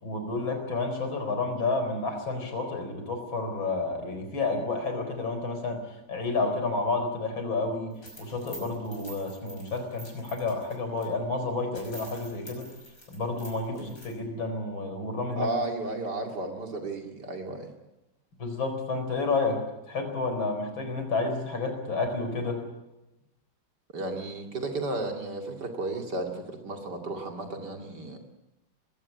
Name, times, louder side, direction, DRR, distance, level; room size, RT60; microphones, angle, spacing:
voice 1, 0.0-5.8 6.1-7.9 8.2-12.6 13.1-15.5 18.4-19.6 19.9-22.6, left 3 dB, 85° left, 6 dB, 5.0 m, -30 dB
sound 1, 7.9-11.1 11.4-11.5 11.7-14.1, right 1 dB, 45° left, 6.1 m, -47 dB
voice 2, 15.4-17.7 23.9-28.2, right 2 dB, 60° right, 3 dB, 2.9 m, -33 dB
20.5 x 16.5 x 9.6 m, 0.96 s
omnidirectional pair, 2.1 m